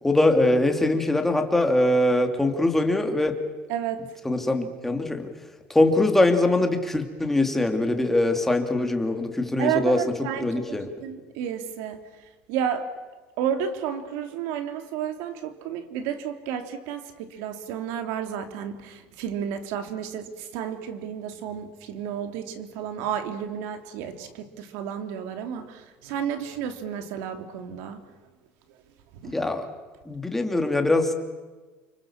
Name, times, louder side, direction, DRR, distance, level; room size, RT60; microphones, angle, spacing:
voice 1, 0.0-3.4 4.2-5.3 5.7-10.0 10.4-10.9 29.2-29.7 30.1-31.1, left 2 dB, 5° left, 5 dB, 2.7 m, -22 dB
voice 2, 3.7-4.2 9.6-12.9 13.4-28.0 28.7-28.8 29.1-29.3, right 8 dB, 80° right, 7 dB, 3.0 m, -32 dB
29.5 x 25.5 x 7.3 m, 1.3 s
cardioid pair, 145°, 5 cm